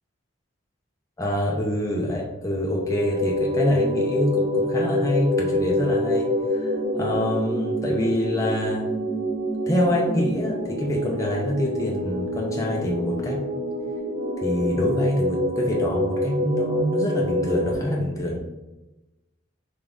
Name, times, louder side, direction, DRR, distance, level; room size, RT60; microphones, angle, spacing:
voice 1, 1.2-8.9 9.7-13.4 14.4-18.4, left 1 dB, 15° left, -2 dB, 0.6 m, -26 dB
sound 1, 2.7-17.7, left 1 dB, 70° right, 0.9 m, -26 dB
3.8 x 3.5 x 3.4 m, 1.0 s
head